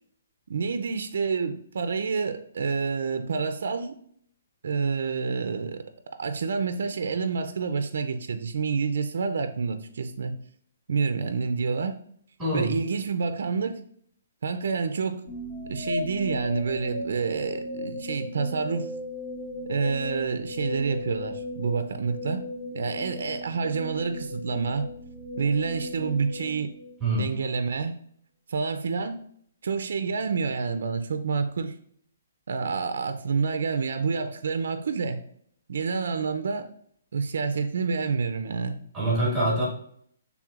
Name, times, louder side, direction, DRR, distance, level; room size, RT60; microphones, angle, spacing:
voice 1, 0.5-3.9 4.6-5.8 6.2-10.3 10.9-12.0 12.5-13.8 14.4-15.2 15.7-18.9 19.6-22.4 22.7-24.9 25.4-26.7 27.2-27.9 28.5-29.3 29.6-31.7 32.5-35.2 35.7-36.7 37.1-38.8, right 5 dB, 70° right, 8 dB, 0.4 m, -28 dB
voice 2, 12.4-12.7 27.0-27.2 38.9-39.7, right 1 dB, 5° right, -7 dB, 1.6 m, -24 dB
sound 1, 15.3-27.3, left 2 dB, 50° left, 0.8 m, -36 dB
6.0 x 3.4 x 2.4 m, 0.64 s
hypercardioid pair, 165°, 0 cm